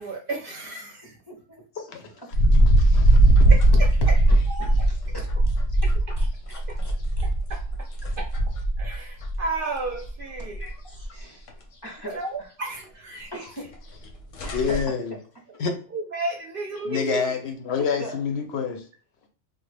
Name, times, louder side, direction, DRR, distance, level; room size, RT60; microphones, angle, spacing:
voice 1, 0.0-1.1 3.5-3.9 4.5-4.9 5.8-6.1 6.7-6.8 7.5-7.6 8.2-8.3 8.8-10.6 12.1-13.4 15.9-17.3, right 3 dB, 60° right, 0.6 m, -33 dB
voice 2, 1.0-1.6 2.1-2.6 3.7-5.6 5.8-7.3 10.4-12.5 13.3-13.7 14.4-15.0 15.3-15.4 17.8-18.2, right 1 dB, 25° left, 0.5 m, -40 dB
voice 3, 1.8-2.1 2.8-3.5 14.5-15.2 15.6-15.7 16.8-18.8, left 6 dB, 65° left, 0.8 m, -28 dB
sound 1, 2.3-9.5 9.8-10.7 11.0-11.1 11.5-11.6 13.6-13.7 14.0-14.1 14.3-14.8, right 1 dB, 90° left, 1.1 m, -19 dB
3.3 x 2.1 x 3.2 m
omnidirectional pair, 1.3 m